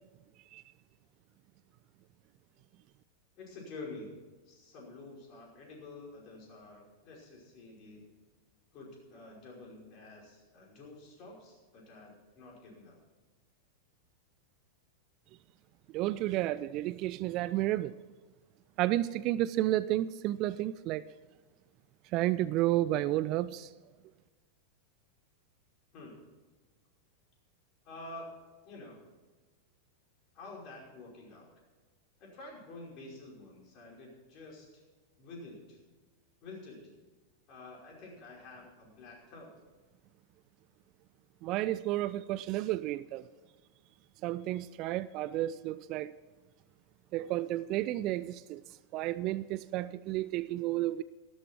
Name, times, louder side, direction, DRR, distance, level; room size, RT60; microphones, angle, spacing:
voice 1, 3.4-4.1 4.5-8.1 8.7-13.0 25.9-26.2 27.8-28.3 28.6-29.0 30.3-31.5 32.2-34.8 35.2-35.8 36.4-36.8 37.5-39.5, left 2 dB, 40° left, 5.5 m, -49 dB
voice 2, 15.9-17.9 18.8-21.0 22.1-23.7 41.4-43.2 44.2-46.1 47.1-48.6 48.9-51.0, right 15 dB, 40° right, 0.4 m, -31 dB
14.5 x 13.0 x 4.6 m
figure-of-eight pair, 90°, 0 cm